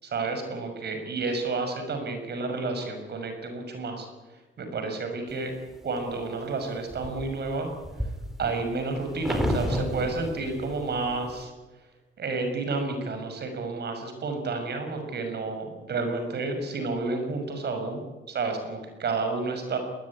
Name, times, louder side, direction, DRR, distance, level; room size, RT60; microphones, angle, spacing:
voice 1, 0.0-4.1 4.6-5.5 5.8-7.7 8.4-11.5 12.2-19.8, right 3 dB, 55° right, 6 dB, 6.4 m, -30 dB
sound 1, 5.4-6.1 6.6-11.4, equal, ahead, 4.6 m, -32 dB
21.5 x 19.5 x 9.9 m, 1.2 s
cardioid pair, 90°, 20 cm